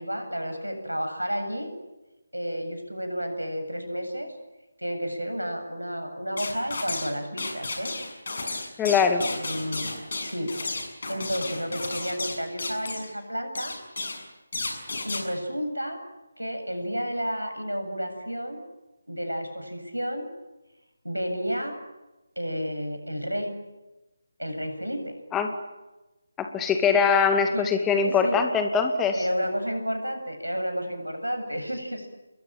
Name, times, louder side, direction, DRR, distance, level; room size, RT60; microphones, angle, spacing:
voice 1, 0.0-1.7 2.3-4.3 4.8-7.9 8.4-8.5 9.2-9.9 10.2-10.5 11.1-13.7 15.0-16.0 16.4-18.6 19.1-20.3 21.0-21.8 22.4-23.5 24.4-25.2 27.0-27.1 27.5-27.6 28.0-28.4 29.1-32.1, equal, 85° right, 6 dB, 7.9 m, -31 dB
sound 1, 6.4-7.1 7.4-13.1 13.5-14.2 14.5-15.2, left 3 dB, 45° left, 7.1 m, -33 dB
voice 2, 8.8-9.2 25.3-25.5 26.4-29.2, left 6 dB, 10° left, 6 dB, 2.1 m, -22 dB
29.0 x 22.5 x 9.2 m, 1.1 s
figure-of-eight pair, 155°, 0 cm